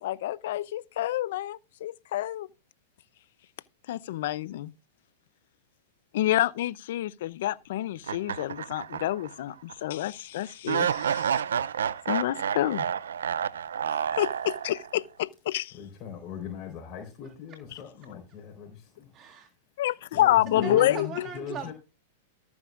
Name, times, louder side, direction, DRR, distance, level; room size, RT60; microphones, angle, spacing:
voice 1, 0.0-2.5 3.9-4.7 6.1-11.4 12.1-12.9 14.1-15.8 19.8-21.3, left 14 dB, 65° left, 0.7 m, -28 dB
sound 1, 8.0-9.3 9.7-9.8 10.7-15.0, right 8 dB, 90° right, 0.5 m, -29 dB
voice 2, 15.7-19.1 20.1-21.7, left 6 dB, 35° left, 4.2 m, -38 dB
voice 3, 19.1-19.5 20.5-21.7, right 6 dB, 30° right, 1.8 m, -39 dB
14.0 x 9.6 x 2.6 m
hypercardioid pair, 125°, 0 cm